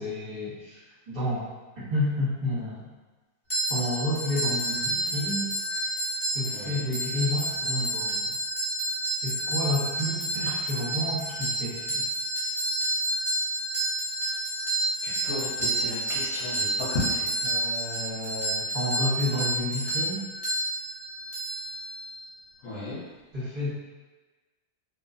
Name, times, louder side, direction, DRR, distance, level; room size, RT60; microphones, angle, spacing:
voice 1, 0.0-1.4 1.8-2.9 3.7-5.5 5.8-5.9 6.3-8.3 9.2-12.0 17.4-20.2 23.3-23.7, left 1 dB, 40° right, -11 dB, 0.8 m, -30 dB
sound 1, 3.5-22.3, right 1 dB, 10° left, 0.6 m, -30 dB
voice 2, 6.5-6.9 15.0-17.3 22.6-23.0, left 2 dB, 60° left, -8 dB, 1.0 m, -34 dB
3.0 x 2.3 x 2.5 m, 1.2 s
omnidirectional pair, 2.0 m